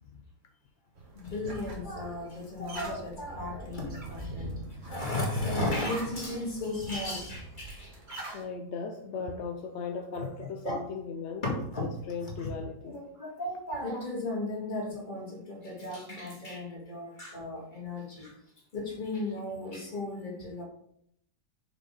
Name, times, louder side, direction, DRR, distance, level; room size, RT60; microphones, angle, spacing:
sound 1, 1.0-8.4, right 1 dB, 40° right, 1.7 m, -42 dB
voice 1, 1.1-4.6 4.8-8.3 10.1-10.3 10.6-10.8 11.4-11.9 12.4-12.5 12.8-18.3 18.7-20.6, left 2 dB, 30° left, -3 dB, 2.2 m, -35 dB
voice 2, 8.3-11.4 11.8-13.0, left 5 dB, 60° left, 4 dB, 0.7 m, -37 dB
6.3 x 5.3 x 3.9 m, 0.71 s
omnidirectional pair, 1.8 m